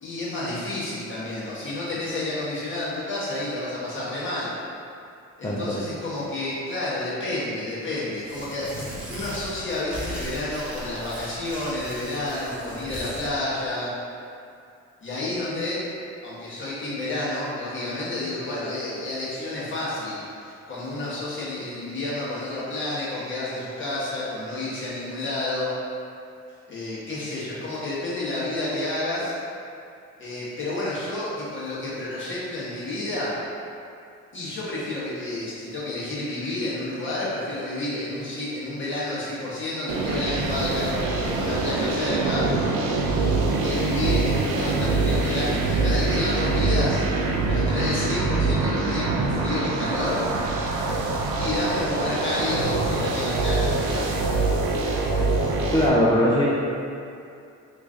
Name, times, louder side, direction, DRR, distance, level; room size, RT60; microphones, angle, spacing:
voice 1, 0.0-4.5 5.4-8.7 9.1-13.9 15.0-15.8 16.2-25.7 26.7-29.3 30.2-33.3 34.3-42.5 43.6-47.0 47.5-50.2 51.4-54.3, left 2 dB, 40° left, -9 dB, 1.3 m, -30 dB
voice 2, 5.4-5.9 55.7-56.5, equal, 15° left, -5 dB, 0.4 m, -20 dB
Tearing, 8.1-13.3, equal, 5° right, 0.8 m, -38 dB
sound 1, 39.9-55.9, right 3 dB, 85° right, 0.5 m, -24 dB
3.0 x 2.5 x 3.6 m, 2.5 s
cardioid pair, 90°, 30 cm